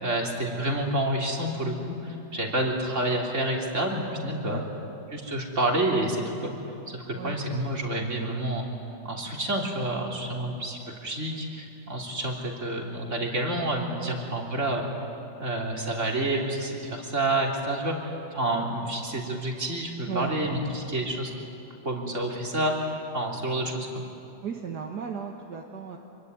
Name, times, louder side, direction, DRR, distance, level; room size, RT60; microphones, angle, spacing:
voice 1, 0.0-4.6 5.1-6.5 6.9-8.6 9.0-14.9 15.4-21.3 21.8-24.0, right 1 dB, 40° right, 0 dB, 3.7 m, -29 dB
voice 2, 4.5-4.9 7.1-7.4 10.5-10.7 14.0-14.2 20.1-20.3 24.4-26.0, right 7 dB, 65° right, 1 dB, 2.1 m, -37 dB
26.5 x 23.5 x 9.6 m, 2.8 s
omnidirectional pair, 1.9 m